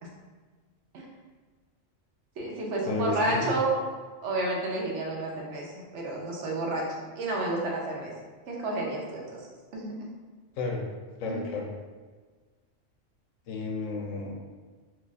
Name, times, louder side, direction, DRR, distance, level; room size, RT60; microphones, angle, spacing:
voice 1, 2.4-3.8 4.2-6.9 7.1-8.1 8.5-9.5 9.7-10.1 11.2-11.4, right 2 dB, 75° right, -2 dB, 1.0 m, -30 dB
voice 2, 2.9-3.5 10.6-10.8 11.2-11.7 13.5-14.3, left 3 dB, 85° left, 0 dB, 1.0 m, -32 dB
2.8 x 2.4 x 3.9 m, 1.4 s
omnidirectional pair, 1.3 m